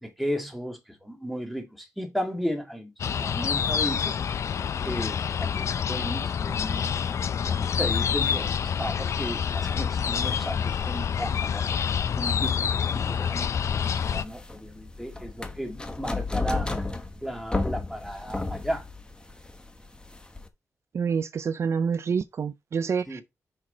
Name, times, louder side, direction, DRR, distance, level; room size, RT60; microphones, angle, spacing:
voice 1, 0.0-4.2 4.8-7.0 7.4-11.7 12.1-16.8 17.2-18.8 23.1-23.2, equal, ahead, 1.9 m, -34 dB
sound 1, 3.0-14.2, left 7 dB, 60° left, 0.4 m, -27 dB
sound 2, 13.9-20.5, left 3 dB, 15° left, 1.0 m, -33 dB
voice 2, 20.9-23.2, right 6 dB, 55° right, 0.4 m, -27 dB
5.9 x 4.8 x 4.2 m
wide cardioid pair, 105°, 6 cm